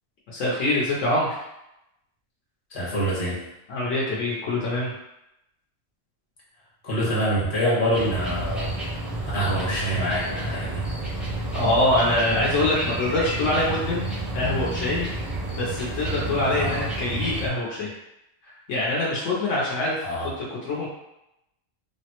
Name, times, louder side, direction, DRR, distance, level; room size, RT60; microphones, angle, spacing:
voice 1, 0.3-1.4 3.7-4.9 11.5-14.0 14.3-15.1 15.6-17.9 18.4-20.0 20.4-20.9, left 1 dB, 75° left, -5 dB, 1.0 m, -24 dB
voice 2, 2.7-3.4 6.8-8.8 9.3-10.9 16.6-16.8 20.0-20.3, equal, 45° left, -6 dB, 1.1 m, -25 dB
sound 1, 7.9-17.5, right 1 dB, ahead, 0.3 m, -30 dB
3.4 x 2.1 x 2.8 m, 0.87 s
omnidirectional pair, 1.3 m